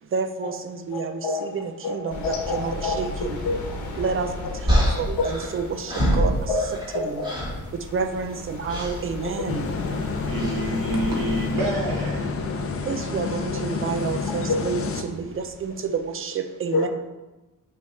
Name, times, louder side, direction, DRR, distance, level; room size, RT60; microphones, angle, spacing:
voice 1, 0.0-3.4 3.9-7.2 7.7-9.7 12.8-16.9, right 5 dB, 40° right, 0.5 m, -30 dB
sound 1, 2.1-16.1, left 2 dB, 60° left, 1.1 m, -37 dB
voice 2, 2.2-4.0 5.2-5.3 6.5-6.6 6.9-7.3 14.5-14.6 16.7-16.9, left 3 dB, 85° left, 1.2 m, -26 dB
sound 2, 4.7-7.0 7.2-7.6 8.7-9.0 10.4-10.6, equal, 15° right, 1.3 m, -24 dB
sound 3, 9.5-15.0, left 4 dB, 40° left, 0.5 m, -29 dB
voice 3, 10.3-12.4, right 1 dB, 80° right, 1.5 m, -27 dB
6.0 x 3.1 x 5.7 m
wide cardioid pair, 170°, 34 cm